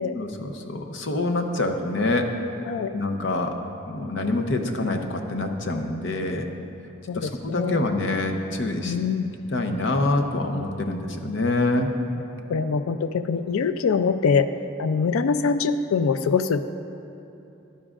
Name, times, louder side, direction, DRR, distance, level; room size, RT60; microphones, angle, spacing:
voice 1, 0.2-2.3 2.9-3.6 3.9-6.5 7.1-9.0 9.5-11.9, left 2 dB, 60° left, 4 dB, 0.7 m, -26 dB
voice 2, 7.1-7.8 8.9-9.3 12.5-14.5 14.8-16.7, left 5 dB, 90° left, 11 dB, 0.4 m, -23 dB
14.0 x 11.0 x 2.5 m, 2.8 s
head